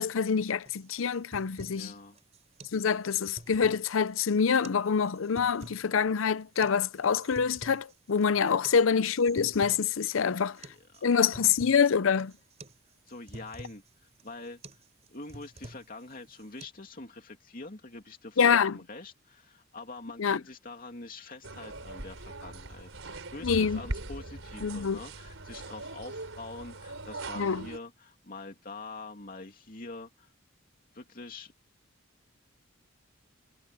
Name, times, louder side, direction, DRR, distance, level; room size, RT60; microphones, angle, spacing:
voice 1, 0.0-1.9 2.7-10.6 11.0-12.3 18.4-18.8 20.2-20.4 23.4-23.8 24.6-25.0 27.4-27.6, left 6 dB, 75° left, 0.6 m, -26 dB
sound 1, 0.7-16.7, right 1 dB, 35° right, 4.3 m, -50 dB
voice 2, 1.7-2.2 10.2-11.4 11.7-11.8 13.1-14.6 15.1-30.3 30.9-31.5, left 3 dB, 45° left, 2.7 m, -45 dB
sound 2, 21.4-27.8, right 2 dB, 75° right, 4.2 m, -41 dB
head